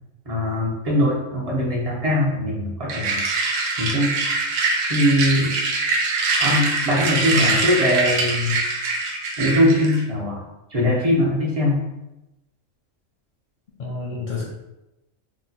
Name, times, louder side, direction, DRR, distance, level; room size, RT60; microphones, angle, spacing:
voice 1, 0.3-3.3 3.8-4.2 4.9-5.5 6.4-8.6 9.4-10.4 10.7-11.9, left 1 dB, 40° right, -3 dB, 0.6 m, -21 dB
sound 1, 2.9-10.0, right 3 dB, 75° right, 0.9 m, -23 dB
voice 2, 13.8-14.4, left 3 dB, 55° left, -3 dB, 0.5 m, -26 dB
2.8 x 2.0 x 4.0 m, 0.94 s
omnidirectional pair, 1.3 m